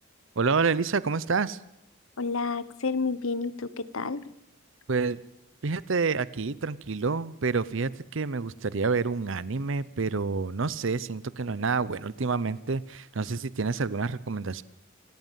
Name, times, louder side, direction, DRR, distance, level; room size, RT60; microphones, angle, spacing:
voice 1, 0.4-1.6 4.9-5.2 5.6-14.6, right 4 dB, 65° right, 19 dB, 0.7 m, -28 dB
voice 2, 2.2-4.2, left 4 dB, 75° left, 17 dB, 1.1 m, -30 dB
27.0 x 14.5 x 7.5 m, 0.85 s
head